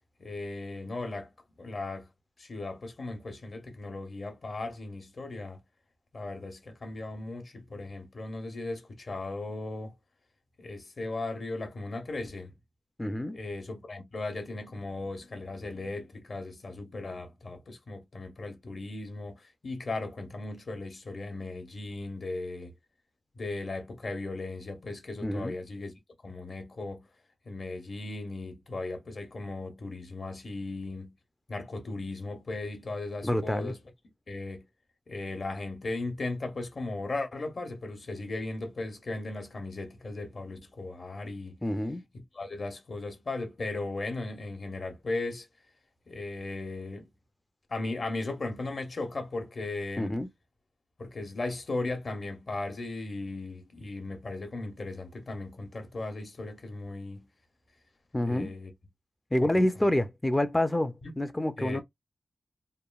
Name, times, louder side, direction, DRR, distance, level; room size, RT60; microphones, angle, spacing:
voice 1, 0.2-1.3 1.6-2.1 2.4-5.6 6.1-9.9 10.6-12.5 13.3-22.7 23.3-25.9 26.2-27.0 27.5-31.1 31.5-33.8 34.3-34.6 35.1-41.6 42.3-45.5 46.1-47.1 47.7-50.2 51.0-57.2 58.2-58.7 59.4-59.6 61.0-61.1 61.6-61.8, left 2 dB, 50° left, 0.8 m, -37 dB
voice 2, 13.0-13.4 25.2-25.6 33.2-33.7 41.6-42.0 50.0-50.3 58.1-58.5 59.3-61.8, left 1 dB, 15° left, 0.3 m, -27 dB
3.0 x 2.2 x 2.2 m
wide cardioid pair, 110°, 0 cm